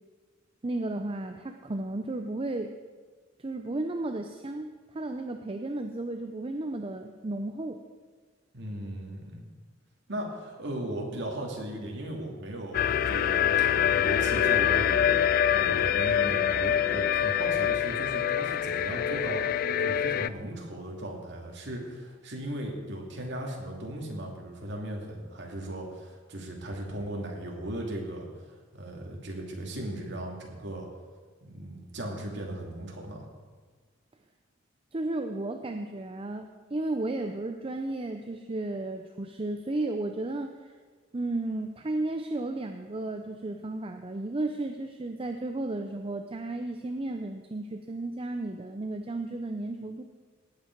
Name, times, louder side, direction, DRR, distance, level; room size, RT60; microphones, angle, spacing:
voice 1, 0.6-2.7 3.4-7.8 34.9-40.7 41.1-50.0, right 2 dB, 30° right, 6 dB, 0.6 m, -33 dB
voice 2, 8.5-9.4 10.1-19.4 19.8-30.9 31.4-33.3, right 1 dB, 65° right, 0 dB, 2.4 m, -37 dB
sound 1, 12.7-20.3, left 9 dB, 50° left, 0.3 m, -25 dB
18.0 x 8.5 x 4.6 m, 1.4 s
head